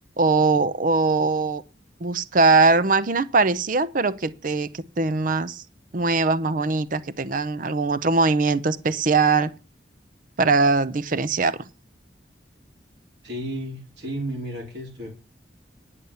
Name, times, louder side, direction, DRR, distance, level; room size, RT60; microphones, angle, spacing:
voice 1, 0.2-1.6 2.0-5.6 5.9-9.5 10.4-11.6, right 3 dB, 45° right, 0.6 m, -21 dB
voice 2, 13.2-15.1, right 1 dB, 65° right, 3.9 m, -32 dB
10.5 x 6.9 x 6.9 m
head